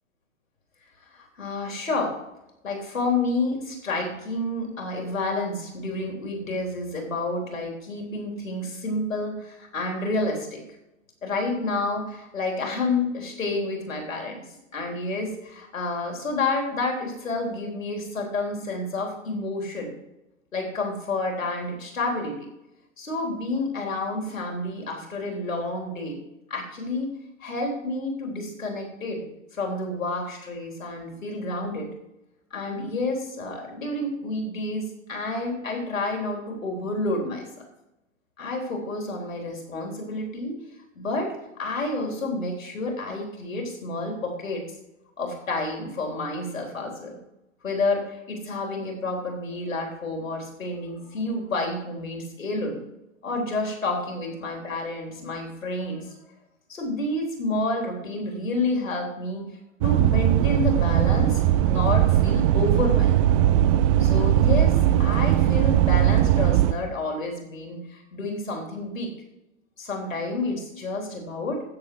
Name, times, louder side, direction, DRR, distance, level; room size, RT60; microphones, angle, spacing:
voice 1, 1.1-2.2 2.6-10.6 11.2-14.4 14.7-19.9 20.5-22.5 23.0-26.2 26.5-27.1 27.4-29.2 29.5-31.9 32.5-37.4 38.4-40.6 41.0-41.3 41.6-44.6 45.2-47.2 47.6-52.8 53.2-56.1 56.7-59.5 59.8-63.2 64.0-69.1 69.8-71.6, left 2 dB, 75° left, 1 dB, 3.8 m, -29 dB
sound 1, 59.8-66.7, right 12 dB, 25° right, 0.4 m, -19 dB
15.5 x 7.0 x 4.7 m, 0.89 s
figure-of-eight pair, 100°, 41 cm